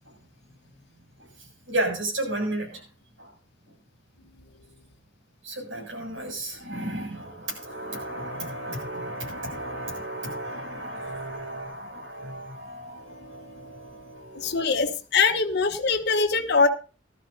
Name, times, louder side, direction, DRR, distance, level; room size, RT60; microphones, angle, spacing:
voice 1, 1.7-2.8 3.2-3.3 5.4-14.7, right 1 dB, 80° right, 0 dB, 7.5 m, -33 dB
voice 2, 14.3-16.7, left 4 dB, 60° left, 5 dB, 1.3 m, -22 dB
18.5 x 13.0 x 2.8 m, 0.35 s
head